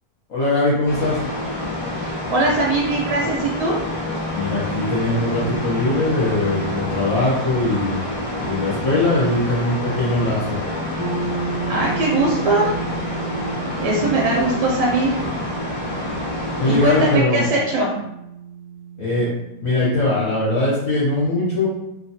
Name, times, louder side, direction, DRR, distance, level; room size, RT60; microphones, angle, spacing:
voice 1, 0.3-1.2 4.3-8.0 8.4-10.6 16.6-17.5 19.0-19.3 19.6-21.7, left 2 dB, 65° left, -8 dB, 1.0 m, -20 dB
sound 1, 0.9-17.2, left 1 dB, 35° left, 0.8 m, -28 dB
voice 2, 2.0-3.8 11.7-12.7 13.8-15.2 16.4-17.9, right 2 dB, 80° right, -3 dB, 1.2 m, -21 dB
sound 2, 11.0-20.7, right 5 dB, 85° left, 0.4 m, -33 dB
2.8 x 2.2 x 2.7 m, 0.86 s
omnidirectional pair, 1.8 m